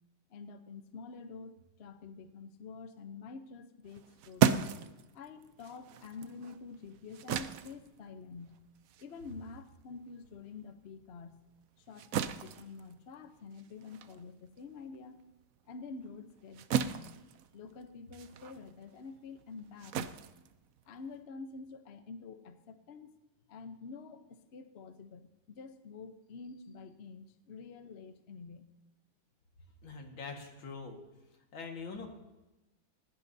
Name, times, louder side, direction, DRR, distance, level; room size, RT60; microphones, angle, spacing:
voice 1, 0.3-4.6 5.1-8.6 9.0-11.4 11.8-15.2 15.7-17.2 17.5-20.1 20.8-23.1 23.5-28.7, left 4 dB, 50° left, 9 dB, 0.8 m, -48 dB
sound 1, 3.9-10.7 11.0-21.2, right 8 dB, 80° right, 0.7 m, -36 dB
voice 2, 29.8-31.0 31.5-32.1, left 4 dB, 80° left, 3 dB, 2.5 m, -43 dB
19.5 x 17.0 x 2.7 m, 1.0 s
omnidirectional pair, 2.1 m